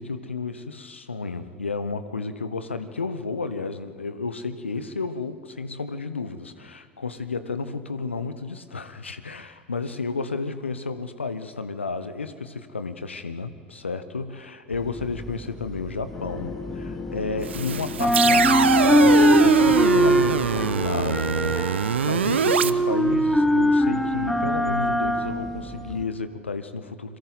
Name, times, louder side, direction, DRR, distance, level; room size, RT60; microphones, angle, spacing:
voice 1, 0.0-27.2, left 4 dB, 85° left, 11 dB, 1.0 m, -32 dB
sound 1, 14.7-17.6 17.9-26.0, equal, 5° left, 1.7 m, -22 dB
sound 2, 16.1-21.9, left 5 dB, 45° left, 3.8 m, -36 dB
sound 3, 17.4-22.7, right 8 dB, 75° right, 0.5 m, -23 dB
29.0 x 23.0 x 4.0 m, 2.2 s
figure-of-eight pair, 70°, 6 cm